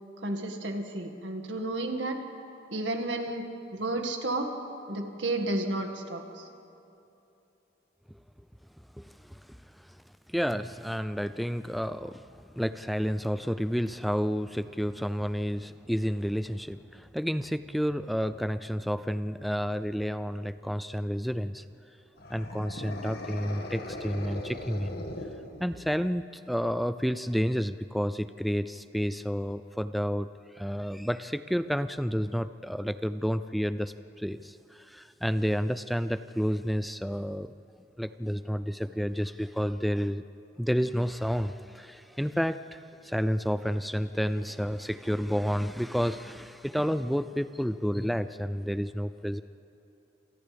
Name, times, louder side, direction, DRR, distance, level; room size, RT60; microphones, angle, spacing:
voice 1, 0.2-2.2 2.7-3.4 3.7-4.5 4.9-6.5, right 2 dB, 80° right, 3 dB, 2.0 m, -32 dB
voice 2, 9.0-10.0 10.3-21.6 22.3-25.0 25.6-30.3 30.5-37.5 38.0-40.2 40.6-49.4, equal, ahead, 11 dB, 0.4 m, -30 dB
sound 1, 22.2-26.0, left 1 dB, 60° left, 1.9 m, -39 dB
28.5 x 28.0 x 3.5 m, 2.8 s
head